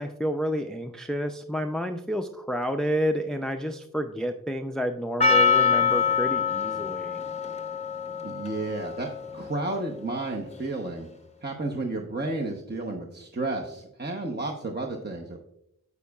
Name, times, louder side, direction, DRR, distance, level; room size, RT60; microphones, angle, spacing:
voice 1, 0.0-7.2, equal, ahead, 6 dB, 0.5 m, -30 dB
Percussion, 5.2-10.2, left 6 dB, 20° left, 0.9 m, -25 dB
voice 2, 8.2-9.1 9.3-11.1 11.4-15.4, right 2 dB, 30° right, 0 dB, 1.0 m, -32 dB
9.8 x 8.3 x 2.4 m, 0.78 s
wide cardioid pair, 45°, 34 cm